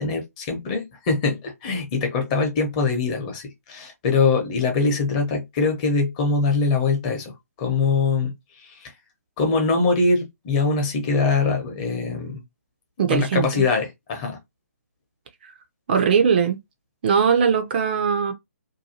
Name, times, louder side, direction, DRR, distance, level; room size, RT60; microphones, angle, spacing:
voice 1, 0.0-8.3 8.6-8.9 9.4-12.4 13.1-14.4, left 4 dB, 25° left, 0.8 m, -23 dB
voice 2, 13.0-13.6 15.9-16.6 17.0-18.3, right 6 dB, 40° right, 0.5 m, -20 dB
2.7 x 2.2 x 2.8 m
figure-of-eight pair, 140°, 9 cm